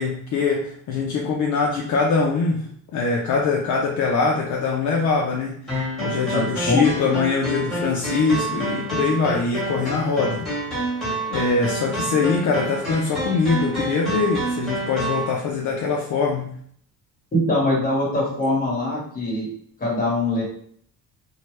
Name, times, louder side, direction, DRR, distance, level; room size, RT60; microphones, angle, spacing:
voice 1, 0.0-2.7 2.9-10.5 11.3-16.5, left 4 dB, 55° left, -2 dB, 0.5 m, -23 dB
sound 1, 5.7-15.3, right 1 dB, ahead, 1.3 m, -28 dB
voice 2, 6.3-6.9 17.3-19.5 19.8-20.4, left 1 dB, 25° left, -5 dB, 1.2 m, -22 dB
2.7 x 2.1 x 3.1 m, 0.62 s
cardioid pair, 140°, 35 cm